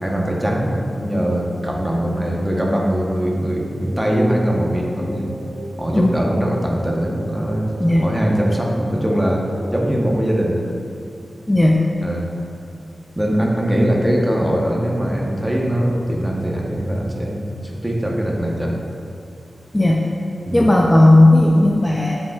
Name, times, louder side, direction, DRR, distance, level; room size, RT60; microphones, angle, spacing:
voice 1, 0.0-5.3 5.8-10.6 12.0-12.3 13.2-18.7 20.5-20.7, equal, 10° right, -2 dB, 0.9 m, -21 dB
sound 1, 3.5-10.7, right 1 dB, 90° right, 1.4 m, -35 dB
voice 2, 11.5-11.8 19.7-20.0 20.5-22.2, left 1 dB, 15° left, -1 dB, 0.4 m, -14 dB
7.8 x 5.1 x 2.4 m, 2.5 s
cardioid pair, 60°, 0 cm